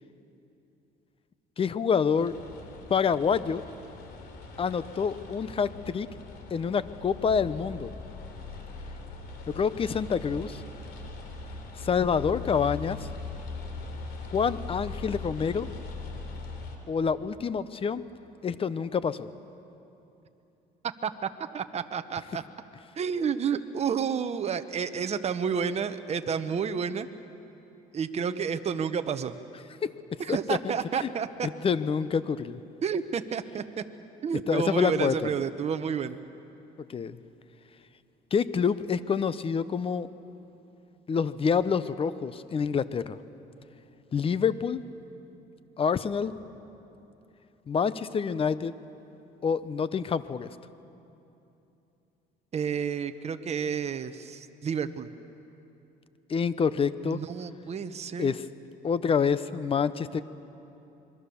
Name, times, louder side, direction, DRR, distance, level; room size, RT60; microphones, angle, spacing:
voice 1, 1.6-2.4 2.9-3.6 4.6-6.1 6.5-7.9 9.5-10.6 11.7-13.1 14.3-15.7 16.9-18.0 18.4-19.3 29.8-30.7 31.0-31.1 31.6-32.6 34.5-35.3 36.8-37.2 38.3-40.1 41.1-43.2 44.1-44.8 45.8-46.3 47.7-48.7 49.4-50.5 56.3-57.2 58.2-58.4 58.8-60.2, left 6 dB, 35° left, 15 dB, 0.8 m, -27 dB
sound 1, 2.2-16.8, left 4 dB, 70° left, 3.6 m, -40 dB
voice 2, 21.5-22.4 23.0-27.1 27.9-29.3 30.2-31.5 32.8-33.6 34.2-36.2 52.5-55.1 57.0-58.3, right 7 dB, 40° right, 9 dB, 1.1 m, -30 dB
26.0 x 22.5 x 7.1 m, 2.9 s
cardioid pair, 110°, 17 cm